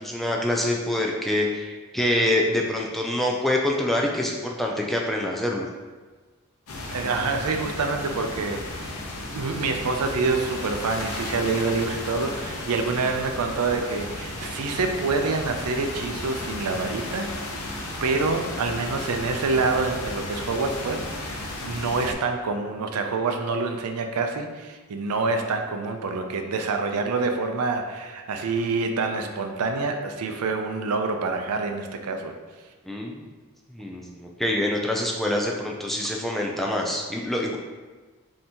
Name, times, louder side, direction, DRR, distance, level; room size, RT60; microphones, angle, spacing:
voice 1, 0.0-5.7 32.9-33.2 33.7-37.6, left 1 dB, ahead, -1 dB, 0.3 m, -25 dB
sound 1, 6.7-22.1, left 2 dB, 75° left, 0.7 m, -34 dB
voice 2, 6.9-8.9 9.3-32.3, right 4 dB, 85° right, 5 dB, 0.5 m, -27 dB
5.4 x 2.8 x 2.9 m, 1.4 s
head